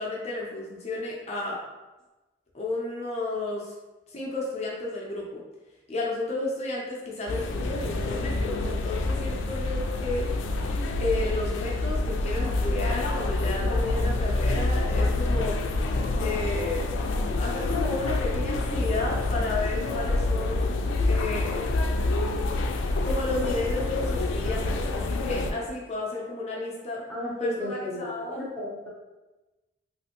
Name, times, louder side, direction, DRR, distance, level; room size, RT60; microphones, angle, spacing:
voice 1, 0.0-1.6 2.5-3.7 4.1-5.4 5.9-10.3 10.6-10.7 11.0-15.6 16.2-17.0 17.4-20.7 21.1-21.8 23.0-27.0 27.4-28.5, left 2 dB, 35° left, -3 dB, 0.5 m, -32 dB
sound 1, 7.3-25.5, left 2 dB, 85° left, 0.3 m, -27 dB
voice 2, 27.1-28.9, left 1 dB, ahead, -8 dB, 0.8 m, -33 dB
3.2 x 2.5 x 2.9 m, 1.1 s
head